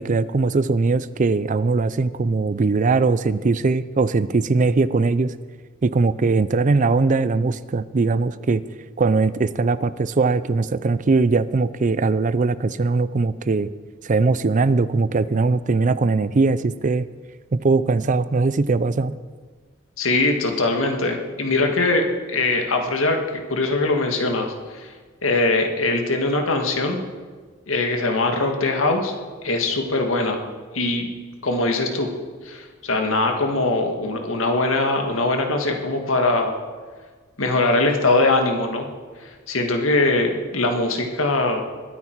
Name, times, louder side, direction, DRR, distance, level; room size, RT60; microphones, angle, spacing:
voice 1, 0.0-5.3 5.8-8.6 9.0-13.7 14.0-17.0 17.5-19.2, right 3 dB, 40° right, 16 dB, 0.4 m, -20 dB
voice 2, 20.0-23.2 23.5-24.9 25.2-27.0 27.7-29.1 29.4-30.4 30.7-31.1 31.4-32.1 32.4-36.6 37.4-38.9 39.5-41.6, left 2 dB, 80° left, 3 dB, 1.8 m, -21 dB
21.0 x 9.4 x 4.7 m, 1.5 s
head